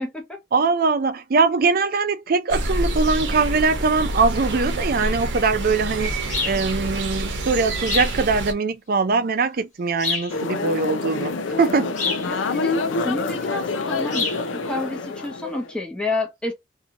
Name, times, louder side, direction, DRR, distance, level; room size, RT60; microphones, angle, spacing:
voice 1, 0.0-0.4 12.3-16.5, left 2 dB, 5° left, 0.7 m, -30 dB
voice 2, 0.5-6.1 6.4-11.9, right 4 dB, 50° right, 0.5 m, -22 dB
sound 1, 2.5-8.5, right 1 dB, 75° right, 0.8 m, -27 dB
sound 2, 6.3-6.6 7.8-8.2 10.0-10.3 12.0-12.3 14.1-14.4, left 4 dB, 40° left, 1.1 m, -26 dB
sound 3, 10.3-15.7, left 3 dB, 85° left, 0.5 m, -27 dB
2.7 x 2.7 x 2.5 m
head